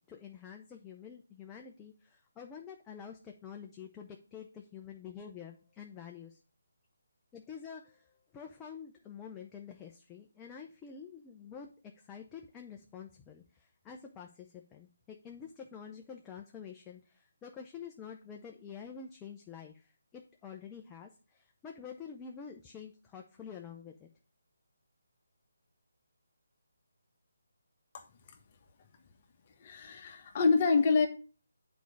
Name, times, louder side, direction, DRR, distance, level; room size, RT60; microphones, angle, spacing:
voice 1, 0.1-6.4 7.3-11.7 12.1-24.1, left 7 dB, 15° left, 2 dB, 0.7 m, -48 dB
voice 2, 29.6-31.1, left 4 dB, 35° left, 5 dB, 1.2 m, -26 dB
8.3 x 4.6 x 5.2 m, 0.36 s
figure-of-eight pair, 150°, 0 cm